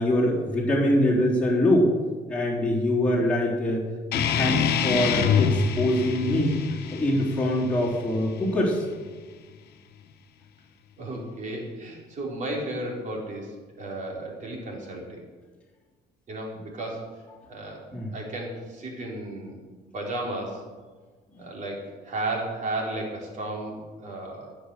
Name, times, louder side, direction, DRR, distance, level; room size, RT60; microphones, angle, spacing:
voice 1, 0.0-1.9 2.3-3.8 4.1-6.5 6.9-8.8 17.9-18.1, left 1 dB, 5° left, -7 dB, 3.8 m, -24 dB
sound 1, 4.1-9.2, left 7 dB, 70° left, 1.1 m, -26 dB
voice 2, 11.0-13.5 13.8-15.2 16.3-17.1 17.5-17.9 18.1-19.6 19.9-20.6 21.4-24.6, right 2 dB, 50° right, -1 dB, 3.7 m, -34 dB
14.5 x 6.6 x 6.8 m, 1.4 s
cardioid pair, 110°, 17 cm